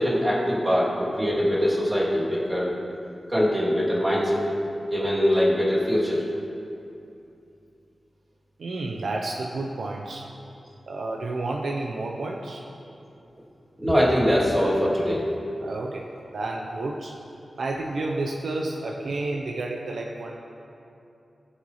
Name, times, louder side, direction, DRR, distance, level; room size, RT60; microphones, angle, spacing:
voice 1, 0.0-2.7 3.3-4.4 4.9-6.2 13.8-15.3, equal, 20° right, -8 dB, 2.9 m, -22 dB
voice 2, 8.6-10.3 10.9-12.6 15.6-16.1 16.3-17.2 17.6-20.4, right 2 dB, 85° right, 0 dB, 0.8 m, -30 dB
20.0 x 7.0 x 3.2 m, 2.7 s
wide cardioid pair, 130°, 0 cm